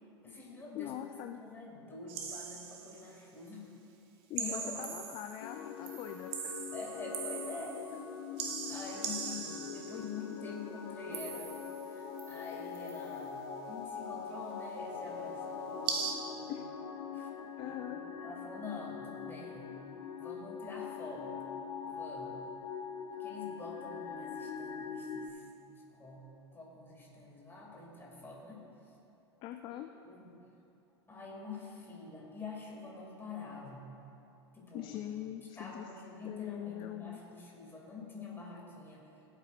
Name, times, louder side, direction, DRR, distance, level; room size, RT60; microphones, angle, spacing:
voice 1, 0.2-0.9 1.3-3.7 4.4-4.8 6.7-7.8 8.7-11.5 11.9-16.6 17.1-17.3 17.6-19.8 20.1-21.5 21.8-22.5 23.2-26.3 26.5-28.6 29.7-29.8 30.0-30.4 31.1-33.9 34.5-35.0 35.6-39.1, left 3 dB, 15° left, -3 dB, 2.4 m, -46 dB
voice 2, 0.8-1.4 4.3-6.5 16.5-16.6 17.6-18.0 29.4-29.9 34.7-35.8 36.3-37.2, left 12 dB, 35° left, 7 dB, 0.4 m, -42 dB
sound 1, 2.1-3.1 4.4-5.6 5.9-8.0 8.4-10.1 11.1-11.9 12.2-13.0 15.9-16.1, right 6 dB, 45° right, 1.0 m, -40 dB
sound 2, 5.4-25.3, left 6 dB, 60° left, 0.8 m, -43 dB
17.0 x 8.1 x 2.5 m, 2.8 s
figure-of-eight pair, 85°, 14 cm